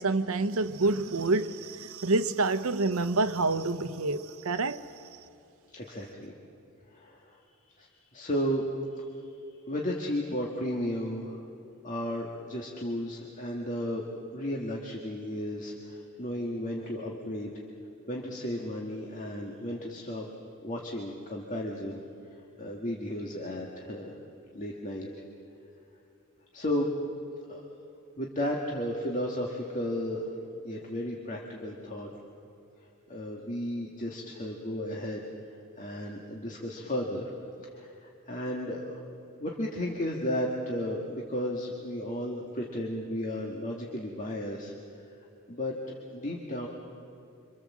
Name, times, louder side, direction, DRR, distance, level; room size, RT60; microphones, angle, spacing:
voice 1, 0.0-4.8, right 3 dB, 80° right, 0.9 m, -27 dB
voice 2, 5.7-6.3 6.9-7.4 7.8-8.7 8.9-9.1 9.7-11.4 11.8-14.0 14.3-17.6 18.1-20.3 20.6-22.0 22.3-24.2 24.5-25.1 26.5-26.9 27.5-27.6 28.2-30.3 30.6-32.1 33.1-35.2 35.8-37.3 37.6-38.9 39.4-45.1 45.5-46.7, left 1 dB, 35° left, 1.9 m, -34 dB
26.5 x 25.5 x 7.5 m
head